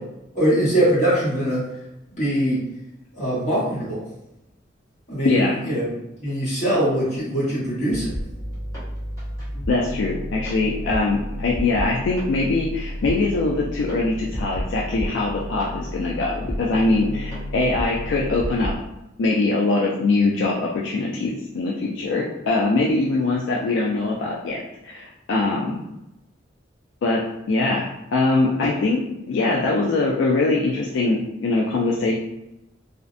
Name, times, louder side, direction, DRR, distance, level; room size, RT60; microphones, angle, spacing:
voice 1, 0.3-1.6 2.2-2.6 3.1-4.0 5.1-8.2, right 1 dB, 35° left, -9 dB, 1.3 m, -22 dB
voice 2, 5.2-5.6 9.7-18.7 19.2-25.9 27.0-27.2 27.5-32.1, left 3 dB, 70° left, -3 dB, 0.3 m, -22 dB
sound 1, 7.9-18.7, equal, 15° left, 0.9 m, -31 dB
2.5 x 2.0 x 2.5 m, 0.90 s
head